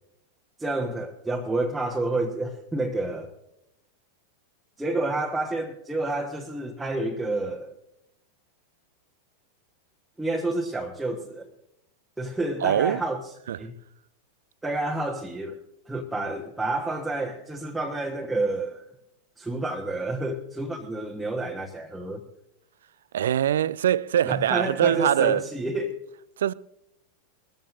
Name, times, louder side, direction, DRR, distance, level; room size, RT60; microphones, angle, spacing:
voice 1, 0.6-3.3 4.8-7.7 10.2-11.5 12.2-13.2 13.6-13.7 14.6-15.6 15.9-18.8 19.4-22.2 24.2-26.0, right 2 dB, 5° right, 1.3 m, -29 dB
voice 2, 12.6-13.0 13.5-13.6 23.1-25.5 26.4-26.5, right 10 dB, 60° right, 0.4 m, -23 dB
21.5 x 14.5 x 2.6 m
figure-of-eight pair, 90°, 0 cm